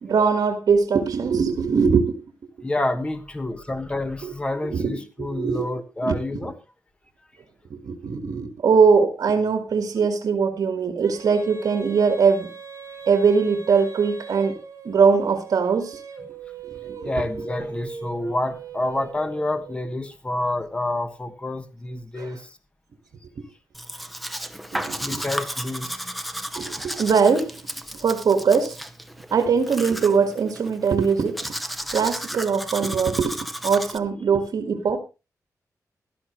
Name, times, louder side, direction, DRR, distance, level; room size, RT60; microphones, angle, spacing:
voice 1, 0.0-2.2 4.2-4.3 4.6-5.7 6.0-6.1 7.7-12.5 13.1-14.6 14.9-16.0 16.6-17.1 22.2-22.3 23.4-23.5 24.7-25.2 26.6-27.6 28.0-28.8 29.3-31.5 31.9-33.4 33.6-35.0, right 5 dB, 75° right, 6 dB, 1.7 m, -21 dB
voice 2, 2.6-6.5 17.0-22.6 25.0-26.9, left 1 dB, 15° left, 9 dB, 1.4 m, -29 dB
Female singing, 11.0-19.8, right 5 dB, 55° right, 5.2 m, -39 dB
Domestic sounds home sounds, 23.7-34.0, equal, ahead, 0.8 m, -34 dB
16.5 x 12.5 x 3.1 m, 0.29 s
wide cardioid pair, 150°, 6 cm